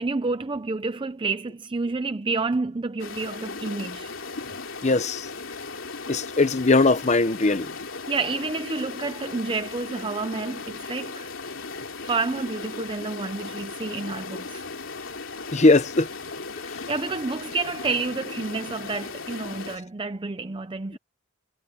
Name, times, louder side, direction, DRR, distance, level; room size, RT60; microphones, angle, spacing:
voice 1, 0.0-4.1 8.1-11.3 12.0-14.6 16.9-21.0, right 3 dB, 25° right, 0.5 m, -29 dB
sound 1, 3.0-19.8, left 4 dB, 65° left, 3.7 m, -37 dB
voice 2, 4.8-5.3 6.1-7.7 15.5-16.1 16.7-16.8 20.9-21.0, left 3 dB, 35° left, 0.9 m, -20 dB
head